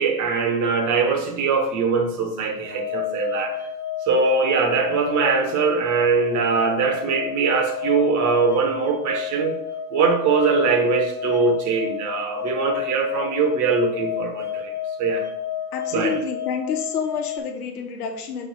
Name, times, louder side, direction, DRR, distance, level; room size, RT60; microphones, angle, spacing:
voice 1, 0.0-3.6 4.1-9.6 9.9-14.7 15.0-15.3 15.9-16.2, right 4 dB, 35° right, 1.2 m, -22 dB
sound 1, 2.6-17.4, left 9 dB, 5° left, 0.9 m, -31 dB
voice 2, 15.7-18.5, left 6 dB, 65° left, 1.2 m, -28 dB
6.3 x 3.8 x 4.1 m
hypercardioid pair, 95°, 50 cm